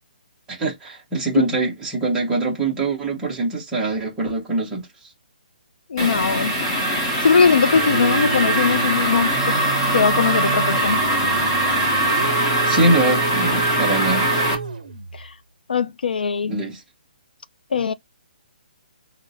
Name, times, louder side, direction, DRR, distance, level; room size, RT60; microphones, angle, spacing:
voice 1, 0.5-4.9 12.7-14.3 16.5-16.8, right 2 dB, 5° right, 0.6 m, -23 dB
voice 2, 5.9-6.6 7.2-9.6 9.9-11.0 15.2-15.3 15.7-16.6 17.7-17.9, left 6 dB, 70° left, 0.4 m, -20 dB
sound 1, 6.0-14.5, right 1 dB, 20° left, 0.8 m, -21 dB
sound 2, 7.7-15.2, right 5 dB, 45° right, 0.6 m, -29 dB
4.8 x 2.0 x 2.6 m
hypercardioid pair, 180°, 5 cm